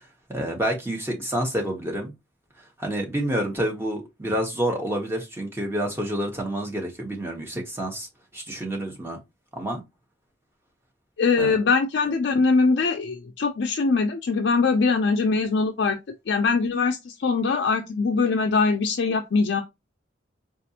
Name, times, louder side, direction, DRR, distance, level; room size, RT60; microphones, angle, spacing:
voice 1, 0.3-2.1 2.8-8.1 8.3-9.2 9.5-9.8 11.4-11.6, right 1 dB, 10° right, 0.9 m, -28 dB
voice 2, 11.2-16.0 16.3-19.6, left 4 dB, 65° left, 0.4 m, -22 dB
4.1 x 2.4 x 2.7 m
head